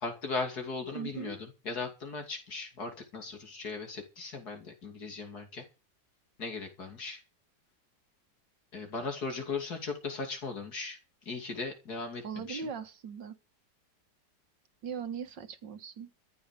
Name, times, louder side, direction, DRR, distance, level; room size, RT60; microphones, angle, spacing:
voice 1, 0.0-5.6 6.4-7.2 8.7-12.7, left 4 dB, 60° left, 3.2 m, -38 dB
voice 2, 0.9-1.4 12.2-13.4 14.8-16.1, right 6 dB, 75° right, 2.0 m, -39 dB
14.0 x 8.2 x 6.8 m
omnidirectional pair, 1.9 m